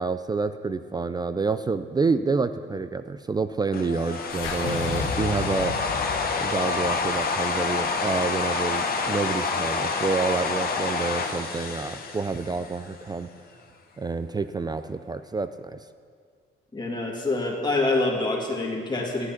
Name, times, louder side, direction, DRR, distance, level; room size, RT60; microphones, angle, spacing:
voice 1, 0.0-5.8 6.4-13.3 14.0-15.8, right 4 dB, 20° right, 11 dB, 0.3 m, -28 dB
sound 1, 3.7-12.9, left 4 dB, 50° left, 1.2 m, -28 dB
sound 2, 3.8-9.0, left 2 dB, 60° right, 3.0 m, -41 dB
sound 3, 4.3-8.6, left 5 dB, 85° left, 1.1 m, -34 dB
voice 2, 16.7-19.3, left 2 dB, 20° left, -1 dB, 2.1 m, -26 dB
11.0 x 8.2 x 5.8 m, 2.1 s
cardioid pair, 90°, 20 cm